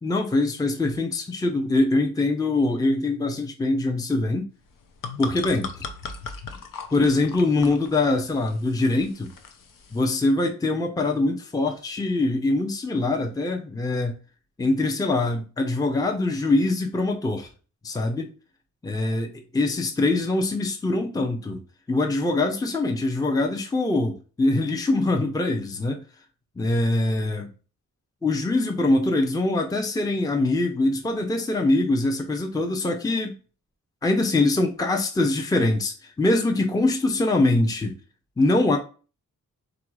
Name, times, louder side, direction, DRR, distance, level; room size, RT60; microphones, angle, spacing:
voice 1, 0.0-4.5 5.2-5.7 6.9-9.3 9.9-14.2 14.6-17.5 17.8-18.3 18.8-19.3 19.5-21.6 21.9-26.0 26.6-27.5 28.2-33.3 34.0-38.0 38.4-38.8, left 2 dB, 10° left, 0.5 m, -23 dB
sound 1, 4.7-10.1, left 5 dB, 80° left, 0.7 m, -38 dB
3.9 x 2.5 x 4.6 m
wide cardioid pair, 120°, 33 cm